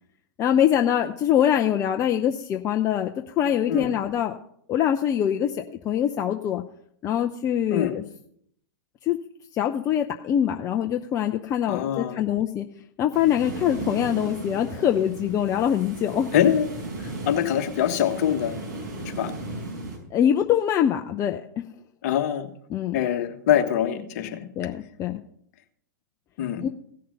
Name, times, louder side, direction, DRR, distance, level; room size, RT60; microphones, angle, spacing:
voice 1, 0.4-4.4 4.7-5.5 5.8-6.6 7.0-8.0 9.1-9.2 9.5-12.6 13.0-16.3 20.1-21.6 22.7-23.0 24.6-25.2 26.6-26.7, left 10 dB, 30° left, 5 dB, 0.7 m, -23 dB
voice 2, 11.7-12.2 16.3-16.7 17.2-18.6 19.2-19.3 22.0-22.5 22.9-24.5 26.4-26.7, left 10 dB, 50° left, 7 dB, 1.4 m, -24 dB
sound 1, 13.1-20.0, right 2 dB, 60° right, 4.8 m, -35 dB
16.0 x 6.7 x 5.4 m, 0.66 s
hypercardioid pair, 110°, 11 cm